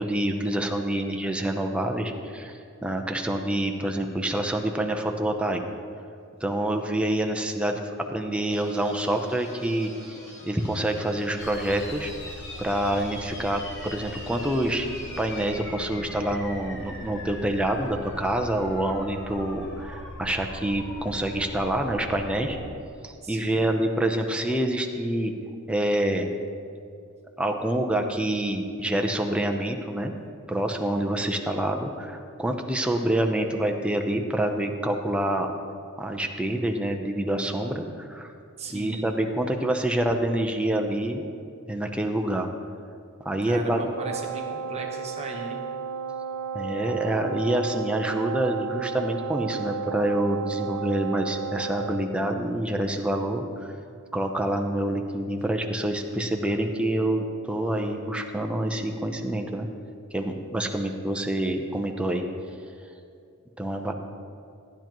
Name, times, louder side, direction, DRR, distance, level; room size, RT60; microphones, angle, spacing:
voice 1, 0.0-5.6 6.4-7.8 8.1-12.1 12.6-14.9 15.2-22.6 23.0-25.3 25.7-26.3 27.4-30.1 30.5-35.5 36.0-38.3 38.7-41.2 41.7-42.5 43.2-43.8 46.5-53.7 54.1-59.7 60.1-62.3 63.6-63.9, right 1 dB, 5° right, 3 dB, 0.7 m, -27 dB
sound 1, 8.5-15.6, left 1 dB, 30° left, 1.6 m, -47 dB
sound 2, 11.4-22.7, left 1 dB, 55° left, 1.1 m, -40 dB
voice 2, 23.2-23.6 38.6-39.1 43.4-45.6, right 2 dB, 30° right, 1 dB, 1.1 m, -37 dB
Wind instrument woodwind instrument, 43.9-52.1, right 6 dB, 80° right, 0.5 m, -33 dB
15.0 x 10.5 x 3.0 m, 2.4 s
head